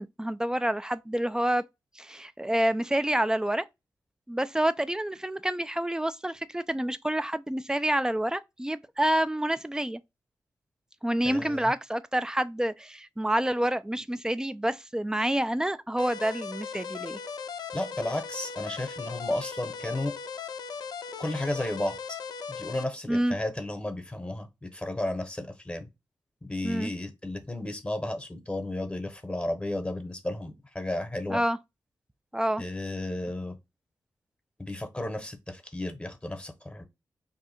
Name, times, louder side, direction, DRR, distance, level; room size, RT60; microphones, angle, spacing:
voice 1, 0.0-1.6 2.0-3.6 4.3-10.0 11.0-17.2 23.1-23.3 26.6-26.9 31.3-31.6 32.3-32.6, right 1 dB, 10° right, 0.3 m, -28 dB
voice 2, 11.2-11.7 17.7-20.2 21.2-22.2 22.6-25.9 26.4-31.4 32.6-33.6 34.6-36.9, left 1 dB, 15° left, 0.9 m, -33 dB
sound 1, 16.0-22.8, left 6 dB, 75° left, 0.4 m, -38 dB
2.7 x 2.4 x 4.1 m
cardioid pair, 55°, 7 cm